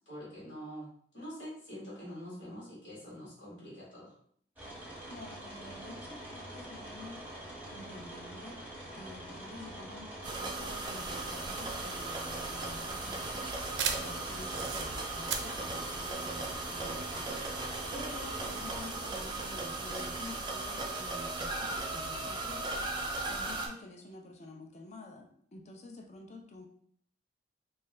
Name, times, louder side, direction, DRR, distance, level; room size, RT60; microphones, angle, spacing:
voice 1, 0.1-0.9 1.1-4.1, equal, 75° left, -7 dB, 1.4 m, -45 dB
sound 1, 4.6-18.8, right 1 dB, 10° right, 0.8 m, -45 dB
voice 2, 5.1-7.2 7.7-8.6 8.9-13.6 13.9-17.4 17.9-26.6, left 2 dB, 40° left, 2 dB, 0.5 m, -49 dB
sound 2, 10.2-23.7, right 2 dB, 25° right, 0.4 m, -37 dB
sound 3, 11.9-17.0, right 6 dB, 85° right, 0.4 m, -38 dB
3.2 x 2.3 x 3.1 m, 0.62 s
head